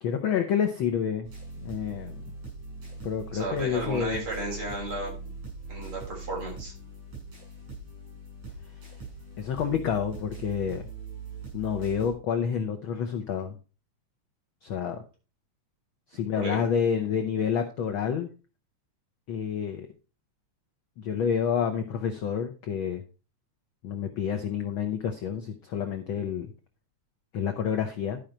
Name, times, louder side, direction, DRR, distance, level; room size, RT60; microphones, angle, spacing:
voice 1, 0.0-1.3 1.6-2.3 3.0-4.2 9.4-10.8 11.5-13.5 14.6-15.0 16.1-18.3 19.3-19.9 21.0-23.0 23.8-26.5 27.3-28.2, left 7 dB, 80° left, 6 dB, 1.1 m, -29 dB
sound 1, 1.2-12.1, right 4 dB, 80° right, 6.6 m, -41 dB
voice 2, 3.3-5.1 5.7-6.7 16.4-16.7, right 2 dB, 45° right, -2 dB, 4.4 m, -34 dB
12.0 x 5.1 x 4.4 m, 0.34 s
omnidirectional pair, 3.3 m